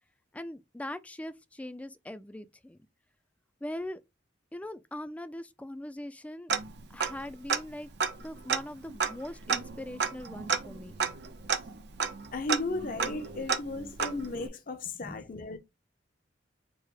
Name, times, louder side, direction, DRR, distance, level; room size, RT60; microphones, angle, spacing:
voice 1, 0.3-2.8 3.6-4.0 4.5-6.5 6.9-7.9 8.2-11.0 13.4-13.5 15.0-15.2 15.5-15.6, left 1 dB, 10° left, 0.3 m, -41 dB
Tick-tock, 6.5-7.2 7.5-7.6 8.0-14.5, right 6 dB, 65° right, 0.6 m, -32 dB
voice 2, 12.3-15.6, left 2 dB, 50° left, 0.6 m, -35 dB
4.6 x 2.1 x 4.7 m
head